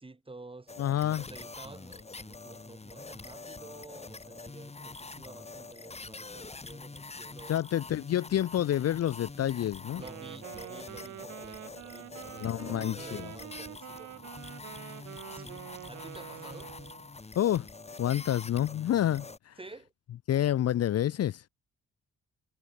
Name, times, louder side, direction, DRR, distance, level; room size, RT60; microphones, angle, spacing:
voice 1, 0.0-0.7 1.1-7.5 9.9-14.3 15.3-16.7 19.6-19.9, right 3 dB, 20° right, 3.9 m, -50 dB
sound 1, 0.7-19.4, left 3 dB, 20° left, 2.9 m, -45 dB
voice 2, 0.8-1.2 7.5-10.0 12.4-13.3 17.4-17.7 18.0-19.5 20.3-21.4, left 11 dB, 55° left, 0.8 m, -28 dB
Wind instrument woodwind instrument, 9.9-17.1, right 14 dB, 65° right, 0.6 m, -46 dB
cardioid pair, 90°, 30 cm